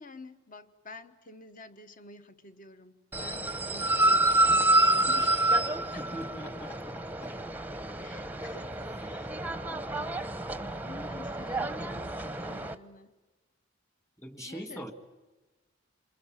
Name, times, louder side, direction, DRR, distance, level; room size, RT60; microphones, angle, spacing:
voice 1, 0.0-6.0 8.0-9.3 9.7-10.4 10.9-13.1 14.4-14.8, left 3 dB, 45° left, 10 dB, 1.3 m, -49 dB
sound 1, 3.1-12.7, right 1 dB, 10° right, 0.8 m, -28 dB
voice 2, 6.0-7.4 14.2-14.9, equal, 15° left, 8 dB, 1.9 m, -42 dB
27.5 x 22.5 x 9.0 m, 1.2 s
head